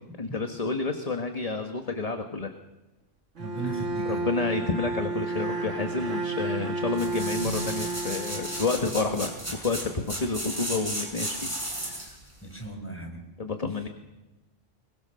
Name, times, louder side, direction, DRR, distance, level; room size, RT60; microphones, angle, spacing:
voice 1, 0.2-2.5 3.6-3.7 4.0-11.5 11.8-12.2 13.4-13.9, left 4 dB, 30° left, 5 dB, 1.7 m, -30 dB
voice 2, 3.4-4.3 12.4-13.2, right 2 dB, 10° left, 2 dB, 5.8 m, -36 dB
Bowed string instrument, 3.4-9.3, right 3 dB, 80° right, 2.0 m, -32 dB
sound 1, 6.9-12.2 12.6-12.7, right 1 dB, 25° right, 5.9 m, -34 dB
24.0 x 23.0 x 6.5 m, 1.0 s
omnidirectional pair, 1.3 m